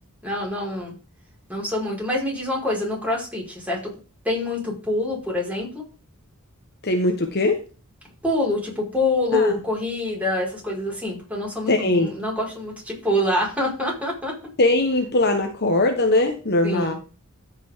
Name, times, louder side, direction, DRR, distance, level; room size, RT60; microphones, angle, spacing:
voice 1, 0.2-0.9 1.5-3.8 4.2-5.8 8.2-14.3 16.6-17.0, left 1 dB, 5° right, -3 dB, 4.9 m, -25 dB
voice 2, 6.8-7.6 9.3-9.5 11.7-12.1 14.6-16.9, left 2 dB, 50° left, 5 dB, 1.2 m, -20 dB
13.5 x 6.1 x 3.6 m, 0.34 s
head